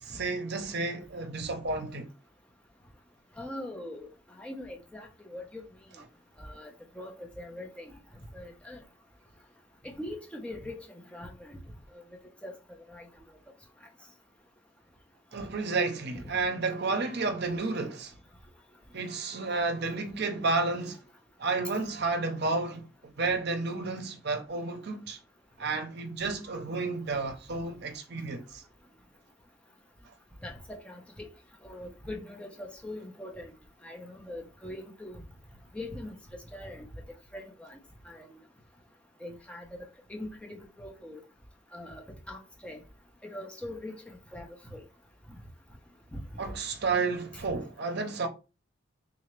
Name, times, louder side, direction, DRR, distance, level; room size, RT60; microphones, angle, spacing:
voice 1, 0.0-2.1 15.3-18.1 18.9-21.0 21.4-25.2 25.6-28.6 46.4-48.3, right 3 dB, 60° right, 0.7 m, -31 dB
voice 2, 3.4-4.1 4.4-5.6 6.4-6.7 6.9-7.9 8.3-8.8 9.8-10.9 11.1-11.6 12.4-12.5 12.9-13.0 16.1-16.2 30.4-31.0 31.6-33.5 33.8-35.2 35.7-36.1 36.5-36.9 37.3-37.8 38.1-38.3 39.2-39.7 40.1-41.2 41.7-42.0 42.3-42.8 43.3-43.9 44.3-44.8, left 1 dB, 5° left, 0.8 m, -41 dB
3.8 x 2.8 x 3.2 m
head